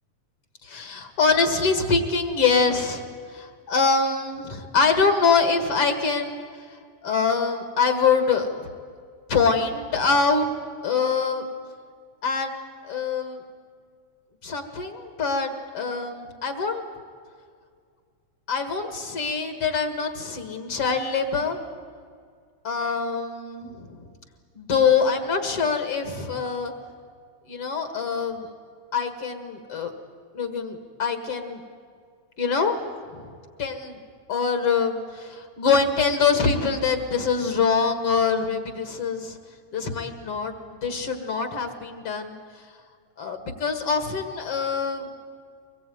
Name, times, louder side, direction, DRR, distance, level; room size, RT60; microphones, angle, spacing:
voice 1, 0.6-3.0 3.3-6.4 7.0-8.7 9.3-10.5 10.8-11.4 12.2-12.5 12.8-13.4 14.4-16.8 18.5-21.6 22.6-24.1 24.5-26.7 27.5-28.5 28.9-29.9 30.3-31.6 32.4-32.8 33.1-33.3 33.6-34.0 34.3-39.4 39.7-42.4 43.2-45.1, left 5 dB, 55° left, 8 dB, 2.6 m, -24 dB
24.0 x 21.0 x 9.4 m, 2.1 s
omnidirectional pair, 3.3 m